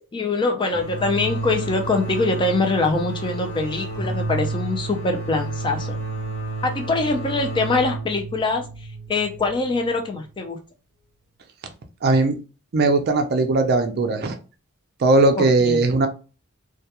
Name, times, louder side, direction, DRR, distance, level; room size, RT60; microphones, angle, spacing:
voice 1, 0.1-6.0 6.6-10.6 15.3-15.8, left 3 dB, 20° left, 4 dB, 0.3 m, -23 dB
sound 1, 0.7-10.2, right 2 dB, 70° left, 1.0 m, -31 dB
voice 2, 12.0-12.3 12.7-14.4 15.0-16.1, right 3 dB, 45° right, 7 dB, 0.4 m, -18 dB
2.2 x 2.1 x 2.8 m, 0.33 s
head